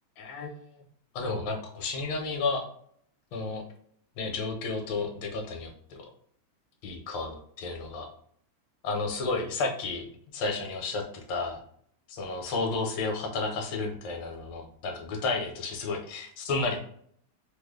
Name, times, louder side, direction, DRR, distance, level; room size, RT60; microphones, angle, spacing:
voice 1, 0.2-0.5 1.1-2.6 3.3-3.6 4.2-5.7 6.8-8.1 8.8-11.6 12.1-16.8, left 3 dB, 70° left, 2 dB, 1.4 m, -32 dB
3.3 x 2.1 x 3.5 m, 0.64 s
omnidirectional pair, 2.3 m